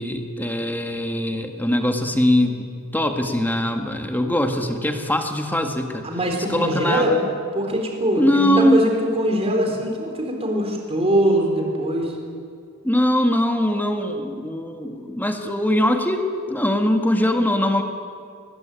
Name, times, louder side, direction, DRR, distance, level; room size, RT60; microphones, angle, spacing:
voice 1, 0.0-2.7 2.9-6.1 6.5-7.3 8.2-8.8 9.6-9.8 12.8-17.8, left 1 dB, 10° left, 5 dB, 1.8 m, -21 dB
voice 2, 6.0-7.1 7.5-12.1, right 1 dB, 30° right, 1 dB, 3.7 m, -22 dB
22.0 x 20.0 x 9.0 m, 2.2 s
head